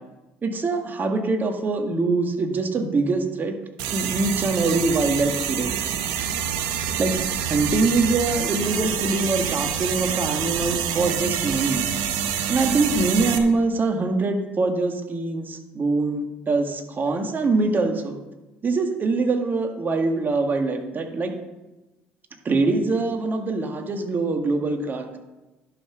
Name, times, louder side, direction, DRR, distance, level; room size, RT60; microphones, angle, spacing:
voice 1, 0.4-3.6 3.9-5.7 7.0-11.8 12.5-18.2 18.6-21.3 22.5-25.2, right 3 dB, 40° right, 5 dB, 1.7 m, -23 dB
sound 1, 3.8-13.4, right 8 dB, 75° right, 1.1 m, -27 dB
11.0 x 5.8 x 6.1 m, 1.1 s
hypercardioid pair, 65°, 5 cm